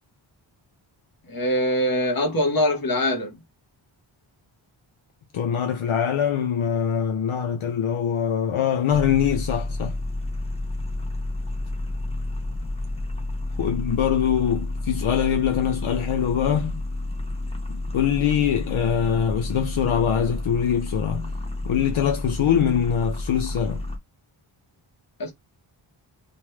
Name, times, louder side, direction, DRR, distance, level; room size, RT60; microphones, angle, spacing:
voice 1, 1.3-3.4 25.2-25.3, left 1 dB, 45° left, 1.2 m, -23 dB
voice 2, 5.3-10.0 13.6-16.8 17.7-21.3 21.6-23.9, left 8 dB, 75° left, 0.6 m, -23 dB
sound 1, 8.9-24.0, left 2 dB, 10° left, 0.9 m, -30 dB
3.2 x 2.2 x 3.1 m
wide cardioid pair, 115°, 49 cm